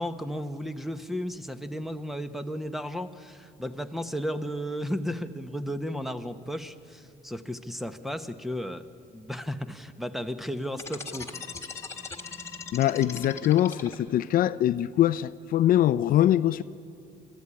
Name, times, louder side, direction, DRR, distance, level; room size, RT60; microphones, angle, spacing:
voice 1, 0.0-8.9 9.1-11.4, equal, ahead, 1.0 m, -34 dB
sound 1, 10.7-14.3, left 4 dB, 15° left, 1.9 m, -39 dB
voice 2, 12.7-16.6, left 12 dB, 60° left, 0.5 m, -23 dB
25.0 x 14.0 x 9.8 m
cardioid pair, 110°, 17 cm